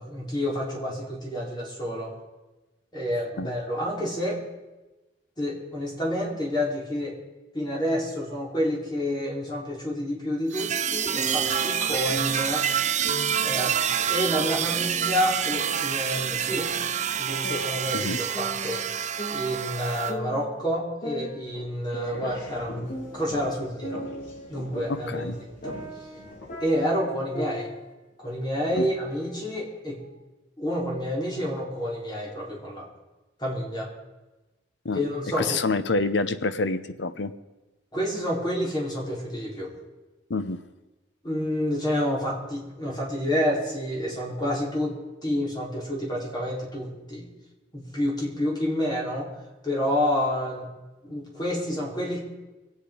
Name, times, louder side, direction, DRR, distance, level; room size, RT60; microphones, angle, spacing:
voice 1, 0.0-2.1 2.9-4.4 5.4-7.2 7.5-12.7 13.4-16.8 17.2-18.8 19.3-22.9 23.1-24.0 24.5-25.3 25.6-25.8 26.6-27.7 28.2-30.0 30.6-32.9 33.4-33.9 34.9-35.6 37.9-39.7 41.2-47.3 47.7-49.3 49.6-50.7 51.0-52.2, equal, 25° left, -2 dB, 3.6 m, -29 dB
sound 1, 10.5-20.1, right 9 dB, 40° right, 0.5 m, -27 dB
sound 2, 11.1-12.6 13.0-13.6 14.4-16.1 16.5-18.1 18.3-20.6 21.0-23.5 23.8-27.9 28.2-28.6 29.1-30.1, right 1 dB, 45° left, 2.6 m, -38 dB
sound 3, 21.5-26.7, left 1 dB, 85° left, 4.3 m, -43 dB
voice 2, 24.9-25.3 28.7-28.9 34.8-35.0 35.4-37.3 40.3-40.6, left 3 dB, 70° left, 12 dB, 0.8 m, -27 dB
23.0 x 8.4 x 5.0 m, 1.1 s
head